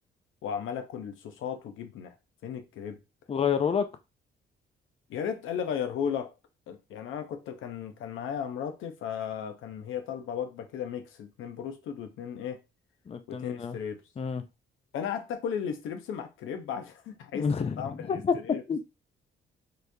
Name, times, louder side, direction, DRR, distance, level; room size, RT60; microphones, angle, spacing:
voice 1, 0.4-2.1 2.4-3.0 5.1-6.4 6.7-12.6 13.3-14.0 14.9-18.6, left 8 dB, 80° left, 0.8 m, -35 dB
voice 2, 3.3-3.9 13.1-13.8 14.2-14.4 17.3-18.4 18.7-18.9, left 6 dB, 30° left, 0.5 m, -29 dB
4.3 x 3.3 x 2.7 m
cardioid pair, 90°, 20 cm